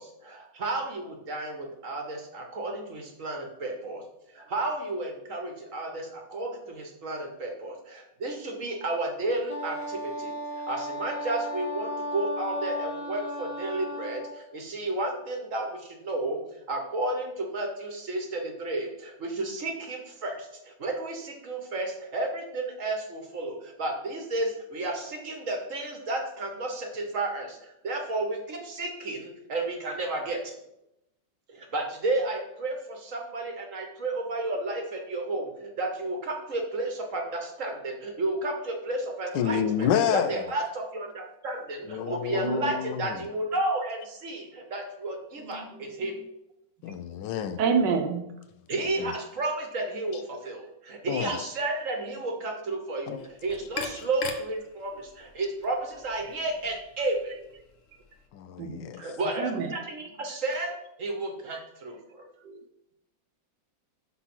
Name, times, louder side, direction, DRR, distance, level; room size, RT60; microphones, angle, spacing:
voice 1, 0.0-4.0 4.3-10.3 10.7-30.5 31.5-39.6 40.1-46.2 48.7-57.3 59.0-60.7 61.0-62.3, right 2 dB, 50° right, 1.2 m, -32 dB
Wind instrument woodwind instrument, 9.5-14.4, left 1 dB, 35° right, 0.5 m, -35 dB
voice 2, 39.3-40.4 41.9-43.3 46.8-47.6 49.0-49.2 50.1-50.2 51.1-51.5 53.1-53.2 53.9-54.0 58.3-59.0, left 8 dB, 75° left, 1.2 m, -29 dB
voice 3, 42.3-42.7 43.8-43.9 45.4-46.2 46.8-47.0 47.6-48.2 50.4-50.5 56.2-56.4 58.6-58.9 59.4-59.7 61.3-61.6 62.4-62.7, right 5 dB, 75° right, 1.3 m, -30 dB
sound 1, 53.2-58.3, left 5 dB, 60° left, 0.9 m, -42 dB
6.0 x 4.0 x 5.9 m
omnidirectional pair, 2.0 m